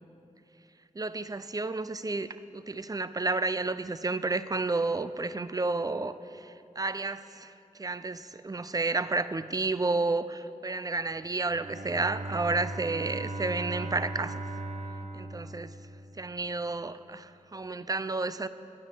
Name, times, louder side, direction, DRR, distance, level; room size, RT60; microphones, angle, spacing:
voice 1, 1.0-2.3 2.5-7.5 7.8-14.4 15.1-15.7 16.2-18.5, right 3 dB, 25° right, 14 dB, 0.5 m, -31 dB
Bowed string instrument, 11.4-16.3, right 2 dB, 55° right, 0.8 m, -38 dB
9.7 x 9.2 x 7.6 m, 2.8 s
cardioid pair, 45°, 14 cm